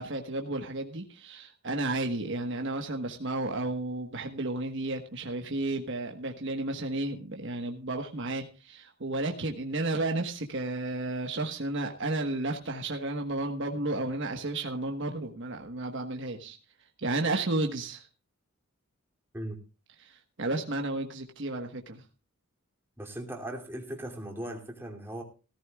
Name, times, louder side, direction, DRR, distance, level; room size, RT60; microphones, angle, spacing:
voice 1, 0.0-16.6 17.0-18.1 20.0-22.0, right 2 dB, 55° right, 4 dB, 1.3 m, -32 dB
voice 2, 23.0-25.2, right 1 dB, 10° right, 1 dB, 2.7 m, -38 dB
17.5 x 14.5 x 2.3 m, 0.32 s
head